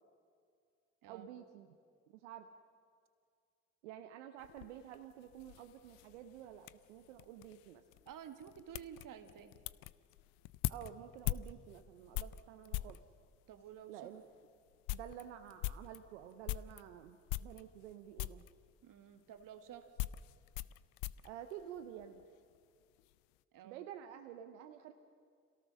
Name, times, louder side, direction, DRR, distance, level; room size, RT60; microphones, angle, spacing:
voice 1, 1.1-1.8 2.1-2.5 3.8-7.8 10.7-13.0 13.9-14.3 14.9-18.5 21.2-22.2 23.6-24.9, right 10 dB, 90° right, 8 dB, 0.8 m, -50 dB
sound 1, 4.4-13.0 13.8-13.9 14.3-14.4 14.7-16.9 17.3-17.9 18.2-18.5 19.4-22.3 22.5-23.1, left 17 dB, 80° left, 0.5 m, -43 dB
voice 2, 8.1-9.6 13.5-14.0 18.8-19.9 23.5-23.9, right 9 dB, 70° right, 8 dB, 1.8 m, -52 dB
27.5 x 18.0 x 6.3 m, 2.2 s
hypercardioid pair, 40°, 34 cm